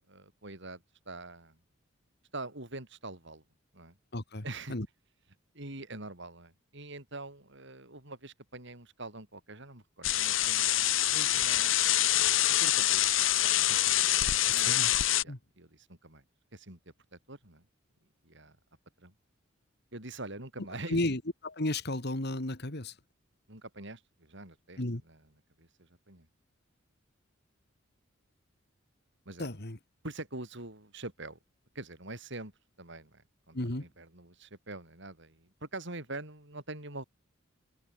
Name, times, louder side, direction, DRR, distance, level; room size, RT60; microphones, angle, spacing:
voice 1, 0.0-1.6 2.3-3.4 3.7-4.0 4.4-4.8 5.5-10.8 11.1-11.8 12.5-13.0 13.4-14.8 15.2-16.2 16.5-17.7 18.2-18.6 19.0-19.1 19.9-21.0 23.5-25.2 25.6-26.3 29.3-29.5 30.0-31.4 31.8-32.5 32.8-37.0, right 2 dB, 60° right, 5.4 m, -45 dB
voice 2, 4.1-4.4 4.7-4.9 14.5-14.9 15.3-15.4 20.9-22.9 24.8-25.0 29.4-29.8 33.5-33.9, left 1 dB, 55° left, 2.4 m, -33 dB
sound 1, 10.0-15.2, left 13 dB, 70° left, 1.5 m, -26 dB
head